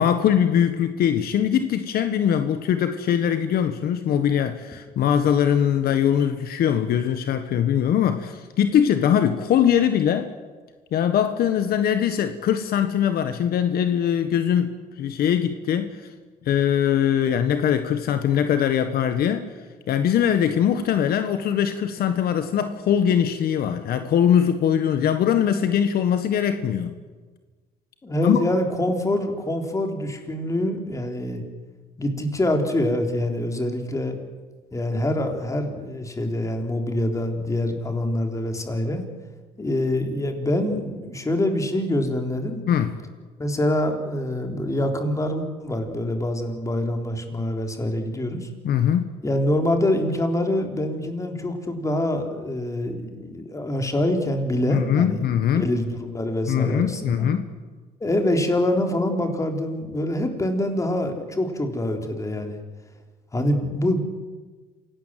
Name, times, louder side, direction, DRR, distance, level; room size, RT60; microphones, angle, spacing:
voice 1, 0.0-10.3 10.9-16.0 16.4-19.5 19.9-27.0 28.2-28.4 42.7-42.9 48.6-49.1 54.7-55.7 56.5-57.5, left 9 dB, 65° left, 9 dB, 1.5 m, -21 dB
voice 2, 28.0-31.4 32.0-34.2 34.7-39.0 39.6-42.6 43.4-48.5 49.2-57.3 58.0-62.6 63.3-64.0, left 1 dB, 20° left, 4 dB, 3.7 m, -25 dB
27.0 x 18.0 x 7.7 m, 1.3 s
cardioid pair, 110°, 17 cm